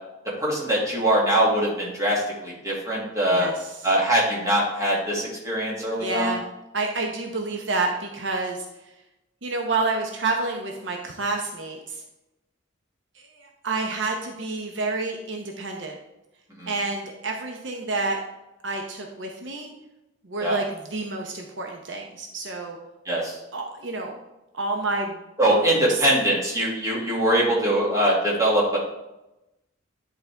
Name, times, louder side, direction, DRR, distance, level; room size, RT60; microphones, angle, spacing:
voice 1, 0.4-3.5 3.8-6.3 16.6-16.7 20.4-20.6 23.1-23.4 25.4-28.8, right 1 dB, 15° right, -5 dB, 2.1 m, -22 dB
voice 2, 3.3-3.9 6.0-6.4 6.7-8.7 9.4-12.0 13.2-15.9 16.7-18.2 18.6-19.7 20.2-22.8 23.5-24.2 24.5-25.2 25.5-25.6 25.9-26.0, right 3 dB, 65° right, 1 dB, 0.8 m, -29 dB
10.5 x 4.3 x 3.4 m, 0.94 s
head